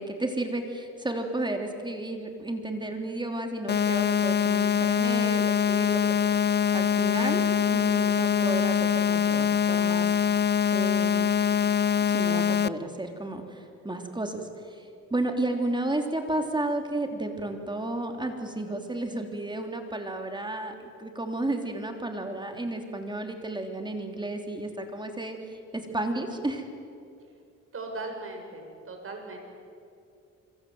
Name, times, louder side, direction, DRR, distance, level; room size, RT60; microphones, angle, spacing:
voice 1, 0.0-6.2 6.7-10.4 10.7-11.3 12.1-25.4 25.7-26.7, right 2 dB, 15° right, 4 dB, 3.3 m, -32 dB
sound 1, 3.7-12.7, left 8 dB, 35° left, 0.7 m, -24 dB
voice 2, 27.7-29.4, right 3 dB, 45° right, 3 dB, 7.1 m, -38 dB
26.0 x 25.0 x 7.9 m, 2.4 s
cardioid pair, 90°, 30 cm